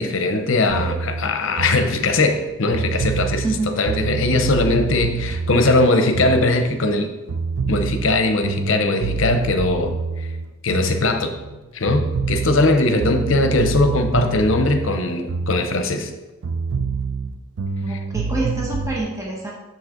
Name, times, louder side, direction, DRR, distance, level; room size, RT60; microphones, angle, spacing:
voice 1, 0.0-3.4 3.8-7.1 7.7-9.9 10.2-10.3 10.6-11.3 11.7-16.1 17.9-18.0, left 2 dB, 65° left, 7 dB, 0.8 m, -20 dB
sound 1, 0.7-7.0 7.3-11.6 11.9-16.1 16.4-19.0, right 5 dB, 85° right, 0.5 m, -26 dB
voice 2, 17.8-19.5, right 2 dB, 15° right, -3 dB, 1.1 m, -26 dB
6.8 x 6.3 x 3.8 m, 1.1 s
head